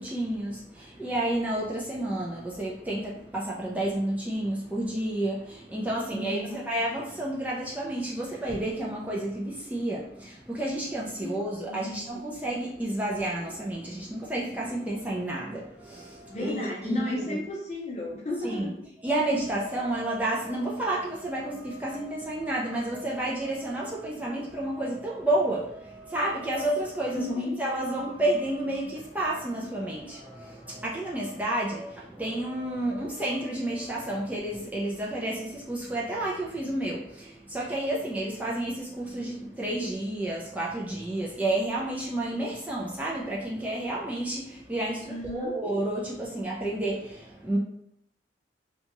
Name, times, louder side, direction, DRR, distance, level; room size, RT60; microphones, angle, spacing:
voice 1, 0.0-17.4 18.4-18.7 19.0-47.6, right 1 dB, 10° right, -4 dB, 0.3 m, -30 dB
voice 2, 6.1-6.6 11.2-12.0 16.3-18.7 27.2-27.6 45.1-45.6, left 1 dB, 35° left, -1 dB, 0.6 m, -34 dB
2.8 x 2.2 x 2.9 m, 0.74 s
head